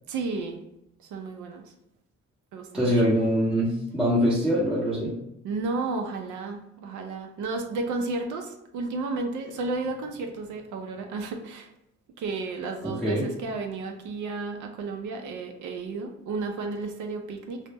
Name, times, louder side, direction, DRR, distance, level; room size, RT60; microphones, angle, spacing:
voice 1, 0.1-0.6 1.0-1.7 2.5-2.9 5.4-11.7 12.2-17.6, right 3 dB, 75° right, 4 dB, 0.4 m, -32 dB
voice 2, 2.7-5.1 12.8-13.2, equal, ahead, -9 dB, 0.6 m, -23 dB
2.1 x 2.0 x 3.2 m, 0.84 s
cardioid pair, 90°, 30 cm